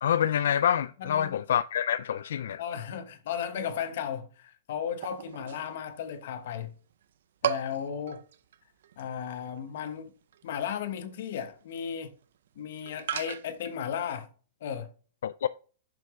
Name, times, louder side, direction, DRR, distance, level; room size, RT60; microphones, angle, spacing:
voice 1, 0.0-2.6 15.2-15.5, left 9 dB, 85° left, 0.3 m, -27 dB
voice 2, 1.0-1.4 2.6-6.7 7.4-8.2 9.0-10.1 10.4-12.1 12.6-14.3 14.6-14.9, left 8 dB, 55° left, 1.1 m, -35 dB
sound 1, 5.0-6.1 6.4-6.5 6.9-7.0 7.4-13.8, right 10 dB, 70° right, 0.5 m, -36 dB
6.8 x 6.3 x 3.7 m
supercardioid pair, 180°, 0 cm